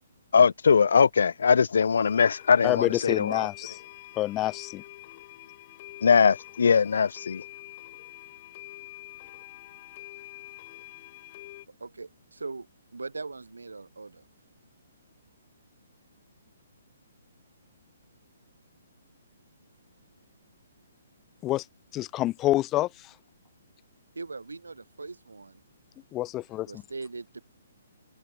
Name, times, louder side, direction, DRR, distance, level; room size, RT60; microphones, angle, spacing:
voice 1, 0.3-3.5 6.0-7.4, left 6 dB, 65° left, 0.5 m, -21 dB
sound 1, 2.0-11.7, left 18 dB, 35° left, 2.4 m, -46 dB
voice 2, 2.6-3.8 4.2-4.8 21.4-21.6 21.9-22.9 26.1-26.8, left 16 dB, 20° left, 0.7 m, -27 dB
voice 3, 11.8-12.7 12.9-14.2 24.2-25.6 26.6-27.4, right 3 dB, 80° right, 2.5 m, -40 dB
figure-of-eight pair, 130°, 0 cm